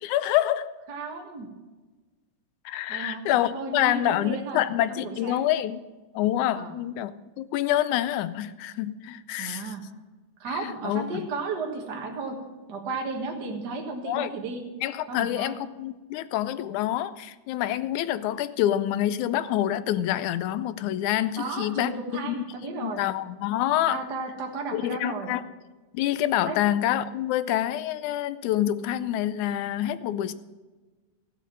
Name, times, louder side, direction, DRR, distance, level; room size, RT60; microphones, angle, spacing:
voice 1, 0.0-0.7 2.7-5.8 6.1-7.1 7.4-9.7 10.5-11.2 14.1-14.3 14.8-21.9 22.2-22.4 22.8-24.0 24.7-25.4 25.9-30.3, left 12 dB, 80° left, 2.0 m, -27 dB
voice 2, 0.9-1.5 2.9-4.6 4.9-5.5 6.5-6.8 9.4-9.8 10.4-12.4 12.7-14.6 15.1-15.5 21.4-23.0 23.9-25.3 26.5-26.6, right 4 dB, 40° right, 1.8 m, -34 dB
14.5 x 7.8 x 7.5 m
omnidirectional pair, 3.4 m